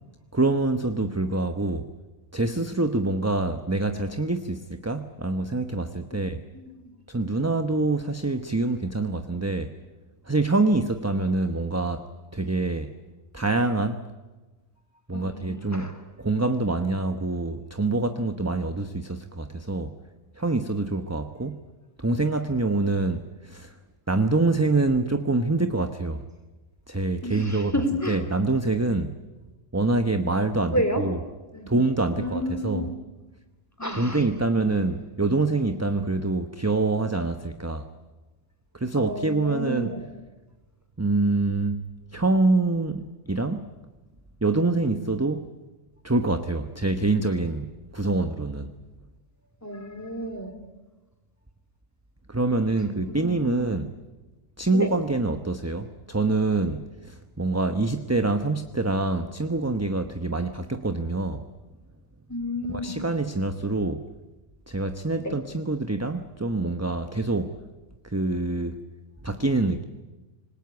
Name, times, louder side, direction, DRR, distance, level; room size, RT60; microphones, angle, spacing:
voice 1, 0.3-1.9 2.3-6.4 7.1-9.7 10.3-12.1 12.3-12.9 13.3-14.0 15.1-15.9 16.2-19.9 20.4-21.6 22.0-23.7 24.1-26.2 26.9-27.7 28.1-29.1 29.7-31.2 31.7-32.9 34.0-37.9 38.7-39.9 41.0-41.8 42.1-43.7 44.4-45.5 46.0-48.7 52.3-53.9 54.6-61.4 62.7-64.0 64.7-67.5 68.0-68.8 69.2-69.8, right 2 dB, 15° right, 8 dB, 0.9 m, -25 dB
voice 2, 6.5-6.9 15.1-15.9 27.2-28.2 28.7-28.8 30.7-31.0 31.5-31.7 32.2-32.9 33.8-34.2 39.0-40.0 49.6-50.5 53.1-53.7 54.7-54.9 62.3-62.9 65.2-65.3, left 1 dB, 10° left, 7 dB, 3.3 m, -31 dB
26.0 x 20.5 x 9.5 m, 1.2 s
omnidirectional pair, 1.3 m